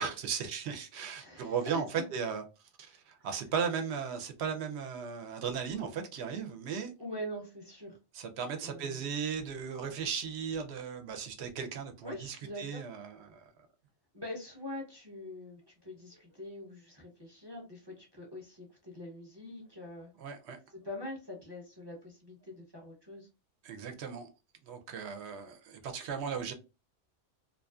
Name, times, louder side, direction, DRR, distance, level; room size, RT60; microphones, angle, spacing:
voice 1, 0.0-2.4 2.8-6.9 8.1-13.5 20.2-20.6 23.6-24.3 24.6-26.5, right 6 dB, 65° right, 0.8 m, -36 dB
voice 2, 1.2-2.0 7.0-8.0 8.6-9.0 12.0-12.8 14.1-20.1 20.7-23.3, left 1 dB, 30° right, 0.5 m, -44 dB
2.5 x 2.4 x 2.3 m
omnidirectional pair, 1.3 m